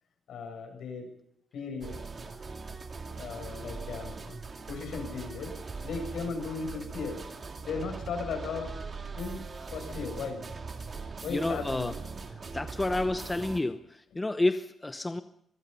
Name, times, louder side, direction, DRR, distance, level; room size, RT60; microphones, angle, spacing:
voice 1, 0.3-1.1 1.5-2.0 3.2-4.4 4.7-5.5 5.8-7.2 7.6-8.7 9.1-9.4 9.7-10.4 11.2-11.9, left 5 dB, 70° left, 5 dB, 8.0 m, -36 dB
sound 1, 1.8-13.6, right 4 dB, 30° right, 2.5 m, -41 dB
voice 2, 11.3-11.9 12.5-15.2, left 2 dB, 10° left, 9 dB, 0.9 m, -30 dB
25.5 x 22.0 x 5.6 m, 0.74 s
wide cardioid pair, 175°, 0 cm